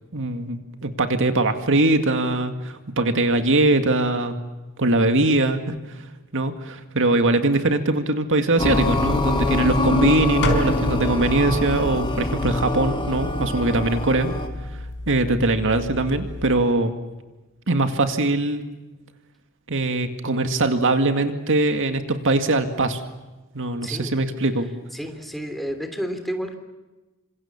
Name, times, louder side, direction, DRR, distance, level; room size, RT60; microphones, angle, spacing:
voice 1, 0.1-4.3 4.8-14.3 14.6-16.9 17.7-18.6 19.7-23.0 23.5-24.7, right 2 dB, 60° right, 7 dB, 2.1 m, -22 dB
sound 1, 8.6-14.5, left 1 dB, 25° left, 2.8 m, -24 dB
sound 2, 10.4-16.6, left 2 dB, 55° left, 4.8 m, -31 dB
voice 2, 23.8-24.1 24.9-26.6, equal, ahead, 6 dB, 3.2 m, -30 dB
28.5 x 26.5 x 7.3 m, 1.1 s
head